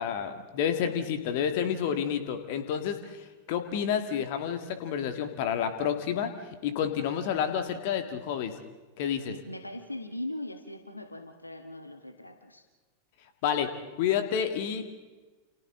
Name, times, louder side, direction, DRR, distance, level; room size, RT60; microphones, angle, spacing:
voice 1, 0.0-6.3 6.6-8.5 9.0-9.3 13.4-13.7 14.0-14.8, left 8 dB, 50° left, 8 dB, 1.9 m, -29 dB
voice 2, 9.2-12.6, left 1 dB, 85° left, 7 dB, 1.4 m, -40 dB
29.0 x 28.5 x 3.8 m, 1.3 s
figure-of-eight pair, 90°, 0 cm